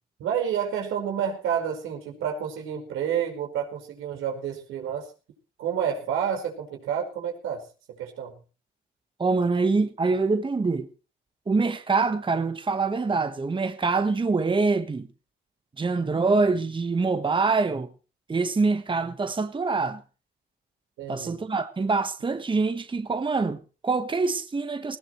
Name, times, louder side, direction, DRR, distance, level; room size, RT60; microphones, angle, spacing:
voice 1, 0.2-5.1 5.6-8.4 21.0-21.4, right 8 dB, 90° right, 5.0 m, -29 dB
voice 2, 9.2-10.9 11.5-15.1 15.8-17.9 18.3-20.0 21.1-25.0, right 4 dB, 25° right, 1.4 m, -25 dB
19.0 x 18.0 x 3.2 m
cardioid pair, 90°, 20 cm